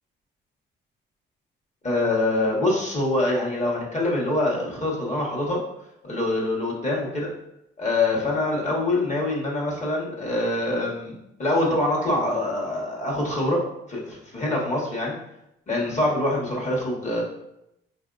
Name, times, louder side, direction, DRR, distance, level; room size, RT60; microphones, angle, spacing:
voice 1, 1.8-5.6 6.0-7.3 7.8-13.6 13.9-15.1 15.7-17.2, left 2 dB, 35° left, -3 dB, 1.3 m, -25 dB
4.5 x 2.7 x 2.5 m, 0.83 s
cardioid pair, 90°, 20 cm